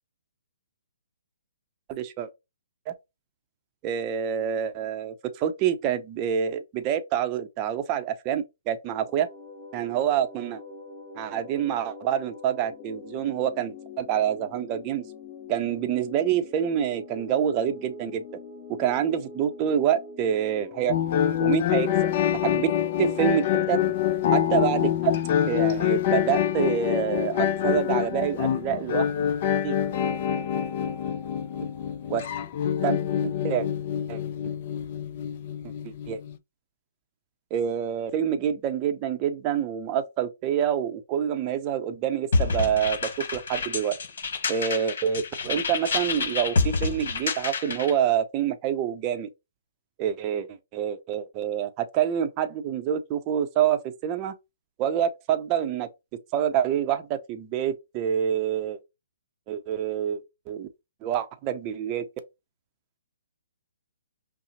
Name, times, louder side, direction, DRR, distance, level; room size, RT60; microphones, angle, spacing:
voice 1, 1.9-2.3 2.9-3.0 3.8-9.3 9.7-10.6 11.2-15.1 15.5-18.2 18.8-20.9 21.4-21.9 22.4-22.7 23.0-23.8 24.3-25.1 25.4-29.3 29.6-29.8 32.1-32.2 32.8-33.0 33.4-33.7 34.1-34.2 35.8-36.2 37.5-44.0 44.5-49.3 50.0-54.3 54.8-55.9 56.3-58.8 59.5-60.2 60.5-60.7 61.0-62.0, right 9 dB, 30° right, 0.5 m, -27 dB
sound 1, 8.9-23.9, left 4 dB, 25° left, 1.0 m, -43 dB
sound 2, 20.9-36.4, left 10 dB, 45° left, 0.4 m, -26 dB
sound 3, 42.3-48.0, left 4 dB, 60° left, 1.3 m, -28 dB
5.5 x 2.0 x 2.9 m
figure-of-eight pair, 135°, 0 cm